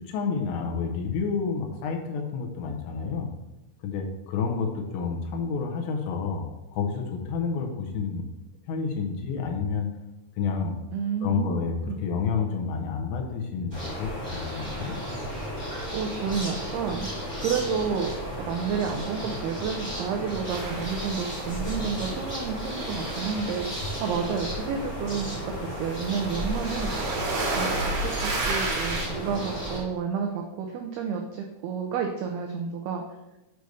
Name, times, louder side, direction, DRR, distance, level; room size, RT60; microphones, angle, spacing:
voice 1, 0.0-3.3 3.8-6.5 6.7-8.2 8.7-9.9 10.4-10.8 11.2-15.0, left 5 dB, 80° left, 1 dB, 3.2 m, -29 dB
voice 2, 10.9-12.0 15.9-17.1 17.4-18.1 18.4-27.2 27.6-33.1, right 6 dB, 90° right, 2 dB, 2.2 m, -30 dB
sound 1, 13.7-29.8, equal, 25° left, 0.5 m, -34 dB
sound 2, 20.5-22.1 22.4-29.1, right 2 dB, 60° right, 1.8 m, -32 dB
8.0 x 3.4 x 6.4 m, 0.97 s
omnidirectional pair, 5.3 m